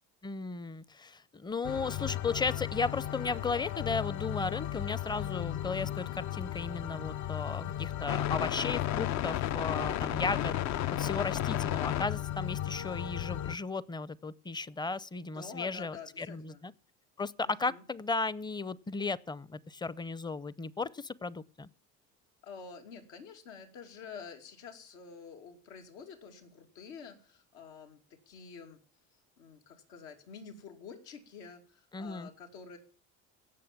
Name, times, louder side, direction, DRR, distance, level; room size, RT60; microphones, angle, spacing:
voice 1, 0.2-16.7 17.2-21.7 31.9-32.3, left 4 dB, 15° left, 0.6 m, -35 dB
sound 1, 1.6-13.6, left 12 dB, 55° left, 0.6 m, -34 dB
voice 2, 15.3-16.6 17.4-17.8 22.4-28.8 29.4-32.8, left 6 dB, 85° left, 2.7 m, -48 dB
17.0 x 6.7 x 7.3 m
supercardioid pair, 100°, 33 cm